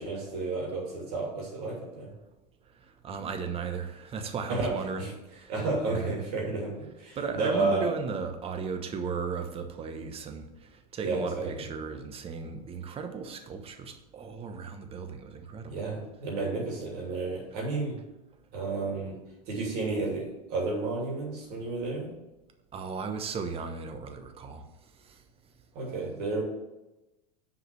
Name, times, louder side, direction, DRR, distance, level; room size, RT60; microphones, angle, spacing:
voice 1, 0.0-2.1 4.5-4.7 5.0-5.1 5.5-6.7 7.0-7.9 11.0-11.5 15.7-18.0 18.5-19.1 19.5-22.1 25.7-26.4, right 3 dB, 50° right, -2 dB, 3.0 m, -31 dB
voice 2, 3.0-5.1 5.3-5.5 5.9-6.1 7.1-15.8 22.7-24.6 25.0-25.2, right 5 dB, 30° right, 7 dB, 1.1 m, -36 dB
6.6 x 4.9 x 6.2 m, 0.98 s
hypercardioid pair, 105°, 20 cm